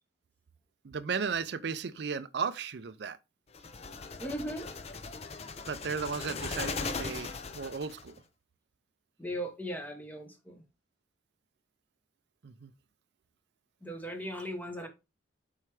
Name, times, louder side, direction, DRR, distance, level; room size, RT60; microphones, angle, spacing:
voice 1, 0.8-3.2 5.7-8.1 12.4-12.7, right 5 dB, 60° right, 0.5 m, -35 dB
sound 1, 3.5-8.1, left 4 dB, 30° left, 0.5 m, -39 dB
voice 2, 4.2-4.7 9.2-10.6 13.8-14.9, equal, 10° left, 1.0 m, -38 dB
7.4 x 4.6 x 3.3 m
head